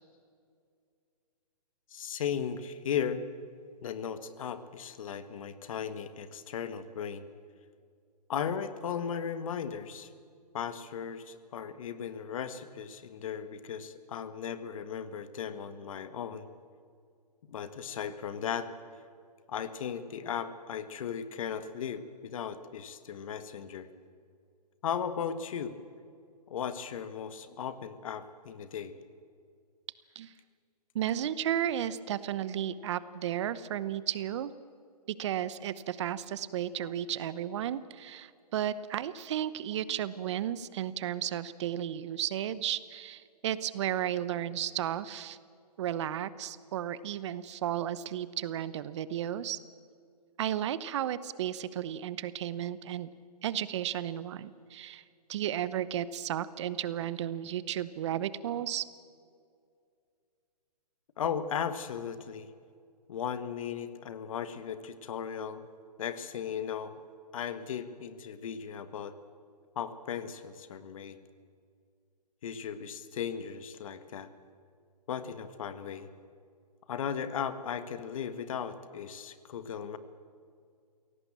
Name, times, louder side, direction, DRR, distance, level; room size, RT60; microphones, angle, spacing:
voice 1, 1.9-3.2 3.8-7.2 8.3-10.1 10.5-16.5 17.5-18.7 19.5-23.9 24.8-25.8 26.5-28.9 61.2-62.5 63.1-65.7 66.0-67.0 67.3-69.1 69.7-71.2 72.4-74.3 75.1-76.1 76.9-80.0, left 8 dB, 55° left, 12 dB, 1.6 m, -36 dB
voice 2, 30.9-34.5 35.2-45.4 45.8-49.6 50.4-53.1 53.4-55.0 55.3-58.9, right 11 dB, 45° right, 16 dB, 0.9 m, -33 dB
24.0 x 17.5 x 7.5 m, 2.3 s
hypercardioid pair, 140°, 20 cm